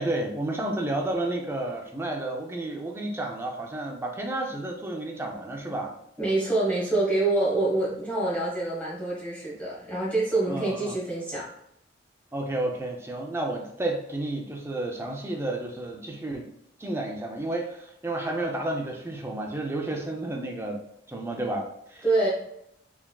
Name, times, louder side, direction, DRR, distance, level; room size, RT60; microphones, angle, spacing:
voice 1, 0.0-5.9 10.5-11.0 12.3-16.5 16.8-20.8 21.1-22.0, right 1 dB, 10° right, 1 dB, 0.4 m, -31 dB
voice 2, 6.2-11.5 22.0-22.3, right 2 dB, 5° left, -7 dB, 1.2 m, -26 dB
4.6 x 3.4 x 2.3 m, 0.76 s
head